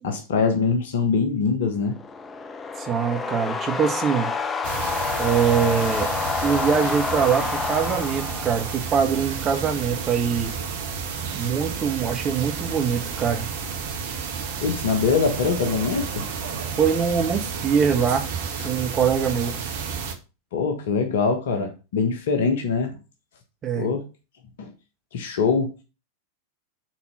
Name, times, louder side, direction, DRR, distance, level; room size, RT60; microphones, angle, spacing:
voice 1, 0.0-2.0 14.6-16.2 20.5-23.0 23.7-24.0 24.6-24.7 25.1-25.7, left 5 dB, 55° left, 1.2 m, -23 dB
sound 1, 1.9-9.0, left 4 dB, 20° left, 0.6 m, -28 dB
voice 2, 2.8-4.3 5.2-6.1 6.4-10.5 11.3-13.4 16.8-18.3 18.6-19.5 23.6-23.9, right 7 dB, 25° right, 1.4 m, -23 dB
sound 2, 4.6-20.1, right 6 dB, 55° right, 1.3 m, -31 dB
6.1 x 4.1 x 5.7 m
figure-of-eight pair, 90°, 0 cm